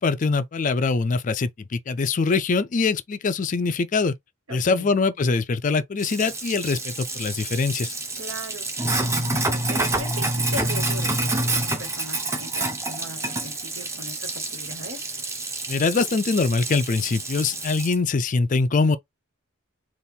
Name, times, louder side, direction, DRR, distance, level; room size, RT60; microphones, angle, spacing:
voice 1, 0.0-4.1 4.5-7.9 15.7-19.0, left 4 dB, 40° left, 0.4 m, -23 dB
voice 2, 4.5-4.9 8.2-15.0, right 1 dB, 75° right, 1.8 m, -39 dB
Sink (filling or washing), 6.0-17.9, right 2 dB, 15° right, 0.7 m, -28 dB
4.2 x 2.5 x 3.5 m
head